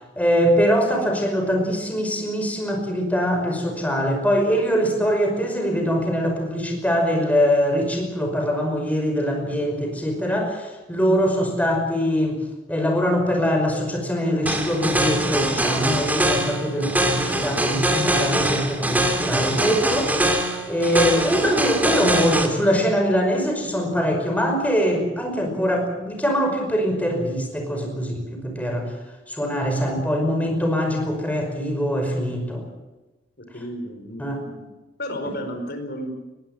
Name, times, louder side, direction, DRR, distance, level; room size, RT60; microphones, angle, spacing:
voice 1, 0.2-12.4 12.7-20.3 20.7-28.9 29.3-32.6 34.2-34.4, equal, 10° left, 3 dB, 5.4 m, -23 dB
sound 1, 14.5-22.5, right 1 dB, 10° right, 2.6 m, -23 dB
voice 2, 33.4-34.7 35.0-36.1, equal, 55° left, 6 dB, 4.7 m, -33 dB
21.5 x 16.5 x 9.3 m, 1.1 s
head